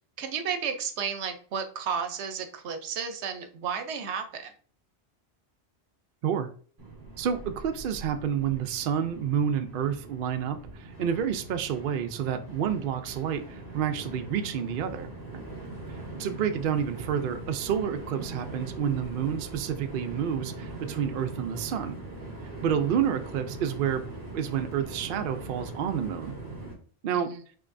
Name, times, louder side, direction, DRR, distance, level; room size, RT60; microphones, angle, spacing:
voice 1, 0.2-4.5 27.1-27.4, right 6 dB, 80° right, 7 dB, 1.0 m, -33 dB
Train, 6.8-26.7, right 2 dB, 35° right, 1.6 m, -41 dB
voice 2, 7.2-13.4 13.7-15.1 16.1-22.0 22.6-24.0 24.3-26.3 27.0-27.3, right 8 dB, 60° right, 8 dB, 0.6 m, -29 dB
5.9 x 3.0 x 2.6 m, 0.43 s
omnidirectional pair, 1.1 m